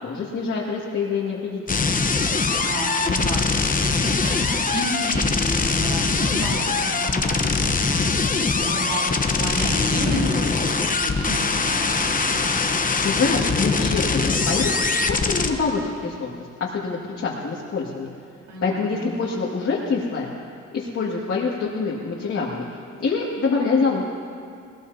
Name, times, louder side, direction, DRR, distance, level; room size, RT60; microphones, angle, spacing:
voice 1, 0.0-1.9 13.0-16.3 16.6-18.1 18.6-20.3 20.7-22.6 23.0-24.0, left 4 dB, 50° left, -5 dB, 2.2 m, -25 dB
sound 1, 1.7-15.5, left 4 dB, 25° left, 1.0 m, -22 dB
voice 2, 2.6-8.0 8.6-12.2 18.5-19.1, right 1 dB, 90° right, -3 dB, 4.1 m, -31 dB
20.0 x 19.5 x 2.8 m, 2.4 s
cardioid pair, 90°, 30 cm